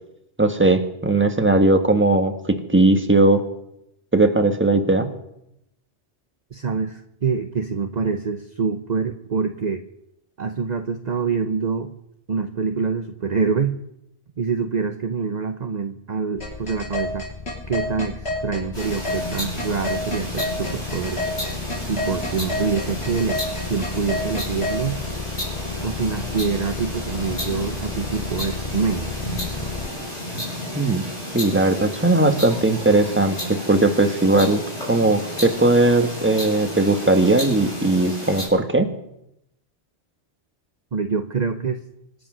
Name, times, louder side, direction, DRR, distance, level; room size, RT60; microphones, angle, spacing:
voice 1, 0.4-3.4 4.1-5.1 30.7-31.0 31.3-38.9, right 2 dB, 10° right, 6 dB, 1.4 m, -18 dB
voice 2, 6.5-9.8 10.4-11.9 12.3-13.8 14.4-17.3 17.7-21.2 21.9-25.0 25.8-29.1 40.9-41.8, right 5 dB, 45° right, 7 dB, 0.8 m, -25 dB
sound 1, 16.4-24.8, left 2 dB, 65° left, 7.7 m, -28 dB
sound 2, 16.4-29.9, left 4 dB, 35° left, 0.9 m, -34 dB
sound 3, 18.7-38.5, left 1 dB, 85° left, 6.6 m, -32 dB
25.5 x 8.8 x 6.2 m, 0.83 s
omnidirectional pair, 1.1 m